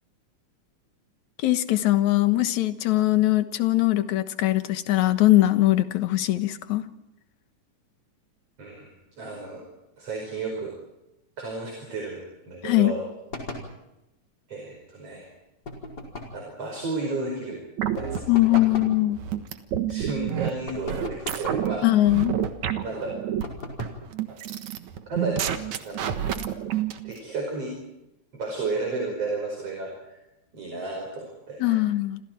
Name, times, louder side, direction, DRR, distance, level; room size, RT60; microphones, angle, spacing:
voice 1, 1.4-6.8 12.6-12.9 18.3-19.2 21.8-22.4 31.6-32.2, left 16 dB, 70° left, 10 dB, 2.5 m, -21 dB
voice 2, 8.6-9.6 10.0-10.7 11.4-13.0 14.5-15.3 16.3-17.6 18.0-18.2 19.9-21.9 22.7-23.1 24.3-24.4 25.1-25.5 25.8-26.4 27.0-27.7 28.3-30.2 30.5-31.8, right 3 dB, 45° right, 1 dB, 6.0 m, -33 dB
sound 1, 13.3-13.7 15.7-16.4 18.0-19.0 20.7-21.7 23.4-24.1, left 2 dB, 30° left, 5.2 m, -37 dB
sound 2, 17.8-27.1, right 10 dB, 65° right, 2.7 m, -29 dB
28.5 x 27.0 x 4.6 m, 0.93 s
omnidirectional pair, 3.7 m